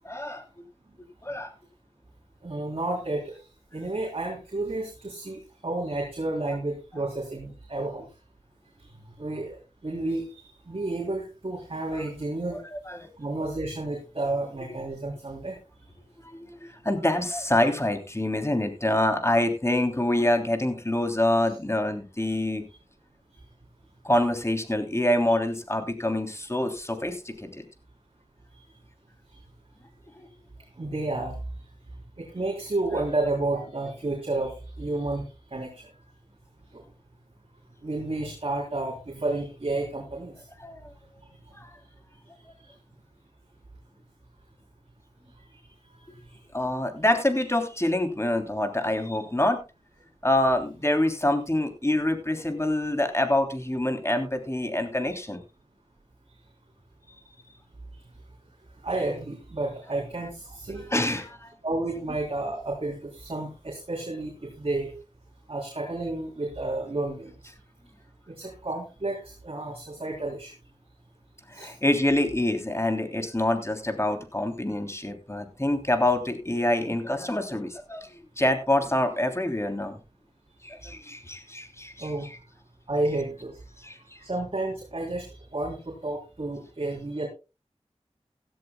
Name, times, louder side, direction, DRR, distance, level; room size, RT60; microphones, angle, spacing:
voice 1, 0.0-0.4 1.2-1.5 11.9-12.1 12.5-13.1 16.2-22.6 24.0-27.6 30.2-30.3 40.6-40.9 41.5-41.7 46.5-49.6 50.2-55.4 60.7-61.5 71.5-80.0 80.6-82.4 83.8-84.2, left 1 dB, 25° left, 5 dB, 3.1 m, -26 dB
voice 2, 2.4-3.4 3.7-8.1 9.2-9.6 9.8-12.6 13.2-15.6 30.8-31.4 32.2-35.9 36.7-36.8 37.8-40.5 45.5-45.6 58.8-60.9 61.6-64.9 65.5-67.3 68.4-70.5 71.5-71.8 82.0-82.3 82.9-83.6 84.2-87.3, right 2 dB, 55° right, -1 dB, 3.7 m, -31 dB
17.0 x 13.5 x 2.3 m, 0.28 s
wide cardioid pair, 45°, 11 cm